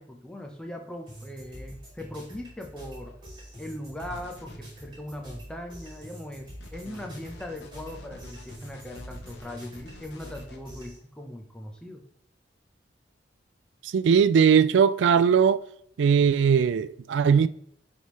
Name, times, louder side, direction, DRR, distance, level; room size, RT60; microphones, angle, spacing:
voice 1, 0.0-3.2 3.6-12.0, left 1 dB, 5° left, 0.8 m, -40 dB
sound 1, 1.1-11.0, equal, 25° right, 2.7 m, -45 dB
sound 2, 4.0-4.6 6.6-10.6, left 2 dB, 70° left, 1.0 m, -47 dB
voice 2, 13.8-15.6 16.0-17.5, right 7 dB, 80° right, 0.3 m, -20 dB
9.3 x 3.6 x 3.1 m
head